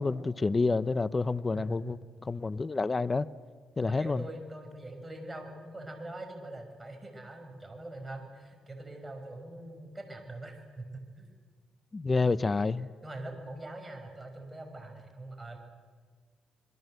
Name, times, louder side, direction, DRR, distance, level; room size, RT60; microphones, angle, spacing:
voice 1, 0.0-2.0 2.3-3.3 3.8-4.2 11.9-12.9, left 3 dB, 25° left, 16 dB, 0.7 m, -28 dB
voice 2, 1.5-2.0 3.8-11.3 13.0-15.6, right 1 dB, 15° right, 4 dB, 6.1 m, -43 dB
26.0 x 23.0 x 7.9 m, 1.5 s
cardioid pair, 90°, 0 cm